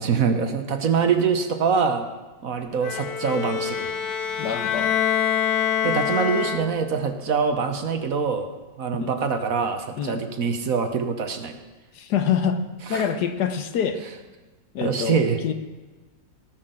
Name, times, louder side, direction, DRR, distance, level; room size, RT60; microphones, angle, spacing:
voice 1, 0.0-2.1 2.4-3.9 5.8-8.5 8.8-11.6 12.9-13.0 14.8-15.4, right 6 dB, 55° right, 7 dB, 1.3 m, -24 dB
Bowed string instrument, 2.8-7.0, left 9 dB, 85° left, 1.5 m, -25 dB
voice 2, 4.4-4.9 8.9-9.1 10.0-10.2 11.9-12.6 12.9-14.0 14.7-15.5, left 7 dB, 70° left, 9 dB, 1.5 m, -25 dB
18.0 x 6.1 x 7.6 m, 1.2 s
omnidirectional pair, 1.9 m